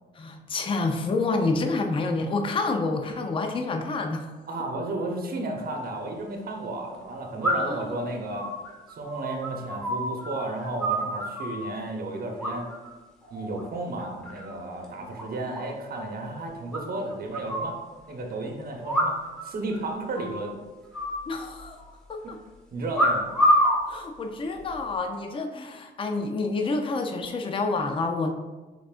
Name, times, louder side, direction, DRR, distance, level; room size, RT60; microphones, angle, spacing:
voice 1, 0.2-4.3 7.5-8.0 15.0-15.1 21.3-21.8 22.1-22.4 23.6-28.3, left 3 dB, 25° left, 5 dB, 0.5 m, -28 dB
voice 2, 4.5-8.5 8.9-12.7 13.3-17.8 18.1-19.1 19.4-20.5 22.7-23.3, right 2 dB, 50° right, 1 dB, 0.9 m, -33 dB
sound 1, 5.6-5.7 7.4-7.9 8.3-10.3 10.6-11.6 12.4-12.9 13.2-13.6 14.0-14.6 14.8-14.9 15.2-15.3 15.5-15.6 15.9-16.0 16.7-17.8 18.8-19.5 19.7-19.8 20.1-20.5 20.9-21.9 22.9-23.8 24.5-24.9, equal, 5° left, 1.3 m, -26 dB
5.8 x 3.7 x 2.4 m, 1.2 s
cardioid pair, 90°, 20 cm